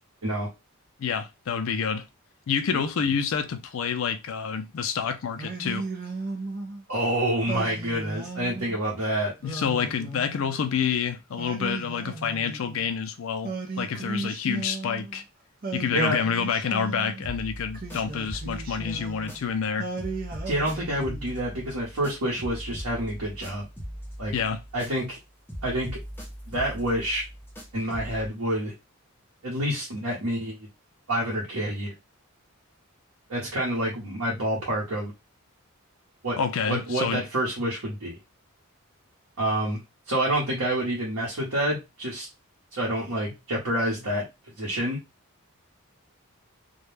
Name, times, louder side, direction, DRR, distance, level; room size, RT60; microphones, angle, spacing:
voice 1, 1.0-2.1 2.5-5.9 9.4-15.2 15.7-19.9 24.3-24.6 36.4-37.2, left 6 dB, 60° left, 0.4 m, -28 dB
Singing, 5.4-6.8 7.5-8.8 9.4-10.7 11.4-12.9 13.4-15.2 15.6-17.3 17.7-19.4 19.8-21.4, right 3 dB, 40° right, 0.5 m, -36 dB
voice 2, 6.9-9.3 15.9-16.2 20.4-23.6 24.2-24.3 24.7-25.2 25.6-26.0 26.5-27.2 27.7-28.7 29.4-30.7 31.1-31.9 33.3-35.1 36.2-36.4 36.7-38.2 39.4-39.8 40.1-42.3 42.7-44.3 44.6-45.0, right 1 dB, 75° right, 0.9 m, -28 dB
sound 1, 17.2-19.7 20.0-25.2 25.5-28.3, equal, 10° left, 0.5 m, -40 dB
2.2 x 2.1 x 3.1 m
head